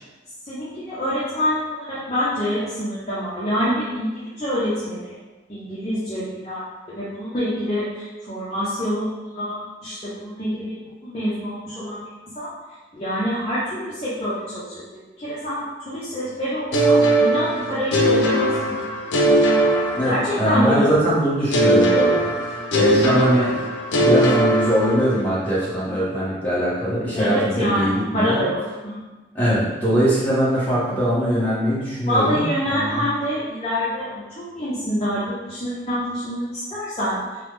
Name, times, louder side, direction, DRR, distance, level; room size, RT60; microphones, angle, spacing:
voice 1, 0.4-5.2 5.5-6.6 7.0-10.7 11.0-12.0 12.3-12.5 12.9-18.8 20.0-20.9 27.1-29.0 32.1-37.2, equal, 30° left, -10 dB, 0.6 m, -26 dB
sound 1, 16.7-20.7 21.5-25.4, right 1 dB, 80° left, 0.5 m, -19 dB
voice 2, 19.9-23.6 24.0-28.4 29.3-33.0, equal, 10° left, -10 dB, 1.0 m, -22 dB
3.3 x 2.1 x 3.3 m, 1.2 s
head